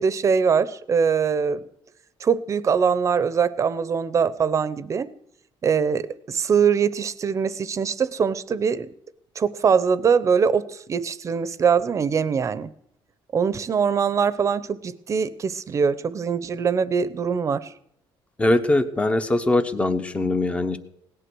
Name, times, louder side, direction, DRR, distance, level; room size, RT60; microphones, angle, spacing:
voice 1, 0.0-1.6 2.2-5.1 5.6-8.9 9.4-12.7 13.3-17.7, right 6 dB, 35° right, 15 dB, 0.8 m, -22 dB
voice 2, 18.4-20.8, left 2 dB, 15° left, 9 dB, 0.9 m, -21 dB
17.5 x 11.5 x 6.2 m, 0.74 s
cardioid pair, 145°, 9 cm